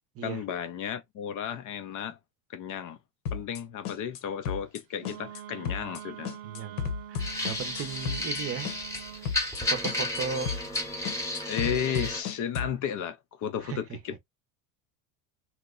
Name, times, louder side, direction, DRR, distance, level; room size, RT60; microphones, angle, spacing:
voice 1, 0.2-2.2 2.5-3.0 3.3-6.3 11.5-14.2, left 8 dB, 40° left, 0.5 m, -33 dB
sound 1, 3.3-3.6 3.9-4.2 4.5-4.8 5.1-5.4 5.7-6.0 6.3-8.4 8.7-9.0 9.3-9.6 9.9-10.2 10.5-10.8 11.1-12.8, left 6 dB, 75° left, 1.1 m, -34 dB
Wind instrument woodwind instrument, 5.0-9.4, right 10 dB, 75° right, 0.7 m, -45 dB
voice 2, 6.4-8.7 9.2-10.6 13.6-13.8, right 6 dB, 30° right, 0.7 m, -36 dB
sound 2, 7.2-12.2, left 1 dB, 5° left, 0.9 m, -33 dB
3.0 x 2.1 x 3.7 m
supercardioid pair, 120°, 48 cm